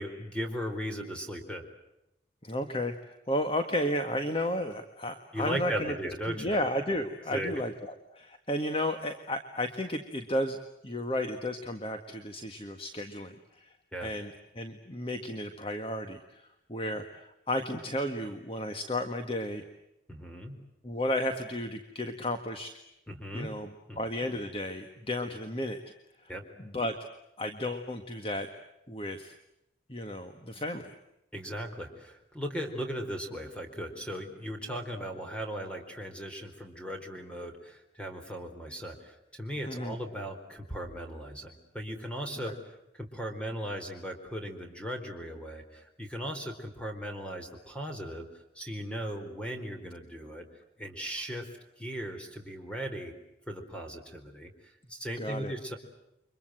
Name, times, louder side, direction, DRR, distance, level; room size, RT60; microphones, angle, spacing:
voice 1, 0.0-1.6 5.3-6.6 7.3-7.6 13.9-14.1 20.1-20.6 23.1-23.5 23.9-24.0 26.3-26.4 31.3-50.5 50.8-51.5 51.8-53.1 53.5-55.8, equal, 5° left, 4 dB, 4.3 m, -37 dB
voice 2, 2.4-6.0 6.3-10.6 10.8-13.7 14.0-19.6 20.8-22.7 23.3-23.7 24.0-25.8 26.2-26.3 26.6-26.9 27.4-28.5 28.9-29.3 29.9-30.9 39.7-40.0 42.4-42.5 55.2-55.5, left 1 dB, 30° left, 7 dB, 1.7 m, -33 dB
30.0 x 25.0 x 7.9 m, 0.88 s
head